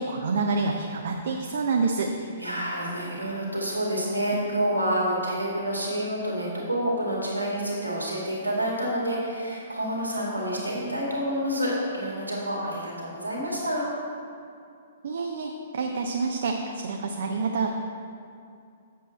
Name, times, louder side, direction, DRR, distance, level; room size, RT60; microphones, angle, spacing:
voice 1, 0.0-2.1 15.0-17.7, right 4 dB, 55° right, 3 dB, 0.6 m, -27 dB
voice 2, 2.4-13.8, equal, 85° right, -4 dB, 2.2 m, -28 dB
7.6 x 7.5 x 4.3 m, 2.5 s
figure-of-eight pair, 115°, 0 cm